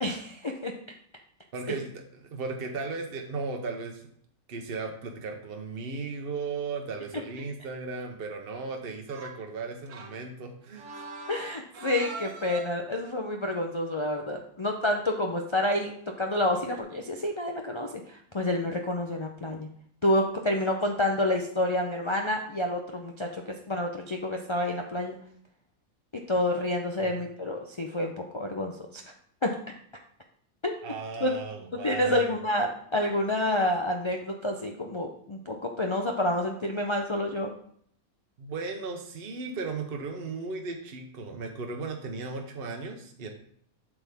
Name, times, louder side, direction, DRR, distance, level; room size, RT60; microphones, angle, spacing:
voice 1, 0.0-0.7 11.3-15.9 16.2-19.7 20.0-25.2 26.1-29.0 29.4-29.5 30.6-30.7 31.2-31.3 31.8-37.5, left 1 dB, 45° left, 2 dB, 0.4 m, -28 dB
voice 2, 1.5-1.9 2.2-4.1 4.5-11.0 26.3-26.4 27.0-27.2 30.8-32.3 38.4-43.3, right 4 dB, 50° right, 3 dB, 0.9 m, -36 dB
sound 1, 9.1-9.5 9.9-12.9 15.1-15.2 16.5-16.8, right 3 dB, 65° right, 1.3 m, -43 dB
7.9 x 6.0 x 3.5 m, 0.65 s
omnidirectional pair, 1.5 m